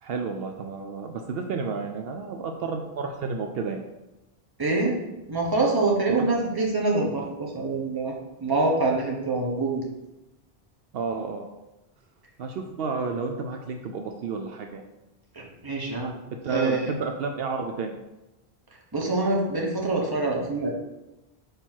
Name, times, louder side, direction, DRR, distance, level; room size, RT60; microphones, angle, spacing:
voice 1, 0.0-3.8 6.1-6.3 10.9-11.5 12.4-14.8 16.4-17.9, right 4 dB, 70° right, 4 dB, 0.8 m, -31 dB
voice 2, 4.6-5.0 5.3-8.1 8.4-9.9 15.4-16.1 16.5-16.8 18.9-20.7, right 2 dB, 25° right, -1 dB, 1.0 m, -25 dB
5.2 x 4.4 x 4.4 m, 0.98 s
omnidirectional pair, 1.1 m